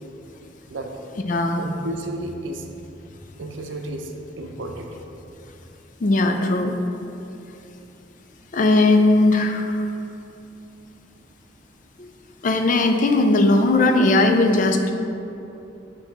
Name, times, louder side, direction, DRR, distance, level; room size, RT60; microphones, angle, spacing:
voice 1, 0.7-1.0 1.6-2.7 3.4-5.0 6.4-6.5, right 1 dB, 75° right, 3 dB, 0.6 m, -32 dB
voice 2, 1.3-1.6 6.0-6.7 8.5-9.8 12.0-12.1 12.4-14.9, left 2 dB, 40° left, 5 dB, 0.4 m, -18 dB
6.5 x 2.9 x 5.8 m, 2.8 s
head